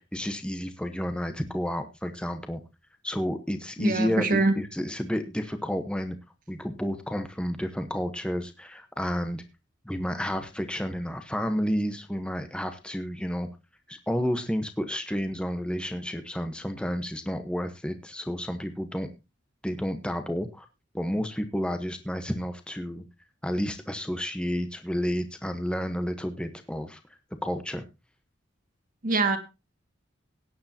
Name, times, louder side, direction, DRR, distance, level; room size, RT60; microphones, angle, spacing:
voice 1, 0.0-2.6 3.0-6.2 6.5-9.4 9.8-13.5 13.9-19.1 19.6-20.7 20.9-23.0 23.4-27.0 27.4-27.8, equal, 5° left, 7 dB, 1.0 m, -31 dB
voice 2, 3.8-4.5 29.0-29.4, right 3 dB, 45° right, 6 dB, 1.9 m, -23 dB
18.0 x 9.5 x 2.8 m, 0.25 s
head